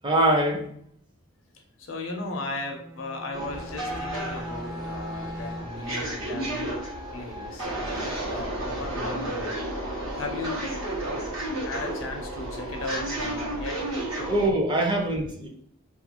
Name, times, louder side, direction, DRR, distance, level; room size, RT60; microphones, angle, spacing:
voice 1, 0.0-0.7 8.0-8.2 14.3-15.5, right 1 dB, 25° right, 0.5 m, -23 dB
voice 2, 1.8-6.8 7.1-7.7 8.3-9.5 9.9-10.7 11.6-13.8, left 2 dB, 70° left, 0.5 m, -36 dB
Bowed string instrument, 2.5-5.9, equal, 65° right, 1.1 m, -40 dB
sound 1, 3.3-14.5, right 1 dB, 85° right, 1.2 m, -32 dB
2.4 x 2.3 x 2.8 m
head